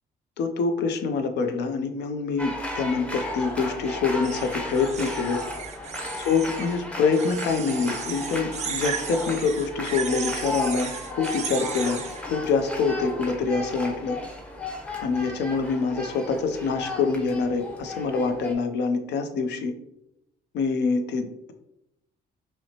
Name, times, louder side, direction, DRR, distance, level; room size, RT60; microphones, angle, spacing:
voice 1, 0.4-5.4 6.2-14.2 15.0-19.7 20.5-21.5, left 4 dB, 85° left, 7 dB, 0.5 m, -25 dB
sound 1, 2.4-18.5, left 1 dB, 5° left, 0.6 m, -35 dB
Steel String Waxing, 4.2-6.8 7.1-12.2, right 7 dB, 40° right, 0.4 m, -35 dB
5.6 x 2.1 x 2.8 m, 0.82 s
cardioid pair, 120°, 17 cm